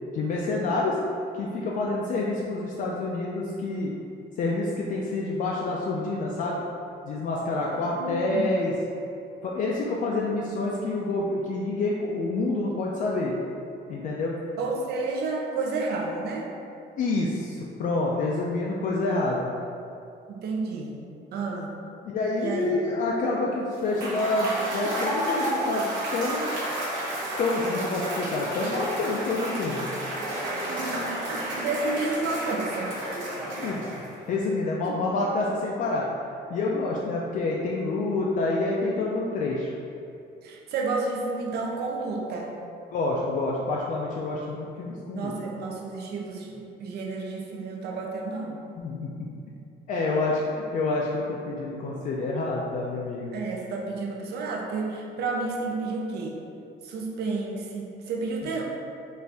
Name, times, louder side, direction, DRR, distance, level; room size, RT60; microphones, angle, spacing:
voice 1, 0.1-1.0 1.4-3.9 4.4-6.6 7.0-8.7 9.4-13.3 13.9-14.4 17.0-19.5 22.0-25.9 26.1-26.5 27.4-29.8 33.6-33.8 34.3-36.0 36.5-39.7 42.9-45.3 48.8-49.1 49.9-53.3, left 2 dB, 45° left, -3 dB, 0.4 m, -27 dB
voice 2, 7.7-8.5 14.6-16.5 20.3-21.0 21.3-21.7 22.4-22.8 31.3-33.3 40.4-42.5 45.1-48.6 53.3-56.4 56.8-58.6, right 3 dB, 65° right, 0 dB, 0.6 m, -31 dB
Cheering / Applause / Crowd, 23.8-34.2, right 1 dB, 85° right, 1.0 m, -31 dB
4.3 x 2.5 x 3.3 m, 2.5 s
cardioid pair, 165°, 18 cm